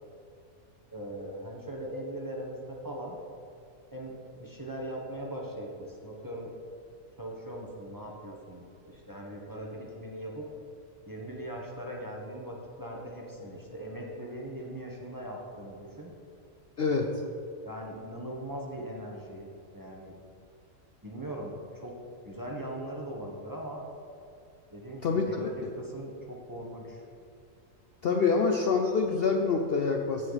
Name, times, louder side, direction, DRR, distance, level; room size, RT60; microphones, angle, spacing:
voice 1, 0.9-3.2 3.9-6.5 7.2-10.5 11.1-16.1 17.6-20.2 21.0-22.0 22.2-23.8 24.7-27.0, right 1 dB, 15° right, -2 dB, 1.0 m, -40 dB
voice 2, 16.8-17.2 25.0-25.7 28.0-30.3, left 4 dB, 60° left, 3 dB, 0.7 m, -26 dB
14.5 x 5.3 x 4.0 m, 2.6 s
omnidirectional pair, 1.4 m